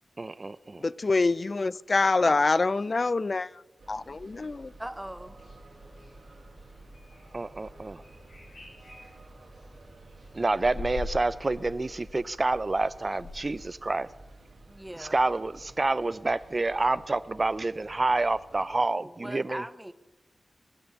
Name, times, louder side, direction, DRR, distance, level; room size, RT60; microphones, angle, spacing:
voice 1, 0.2-0.9 2.2-2.4 7.3-8.0 10.3-14.1 15.0-19.6, right 2 dB, 35° right, 0.4 m, -28 dB
voice 2, 0.8-3.5 3.9-4.7, left 3 dB, 45° left, 0.3 m, -25 dB
sound 1, 3.8-18.7, right 2 dB, 80° right, 2.6 m, -51 dB
voice 3, 4.8-5.4 14.7-15.2 19.0-19.9, right 1 dB, 10° right, 0.7 m, -40 dB
sound 2, 5.2-13.6, left 2 dB, 90° left, 6.0 m, -45 dB
19.0 x 6.9 x 6.8 m
wide cardioid pair, 75°, 0 cm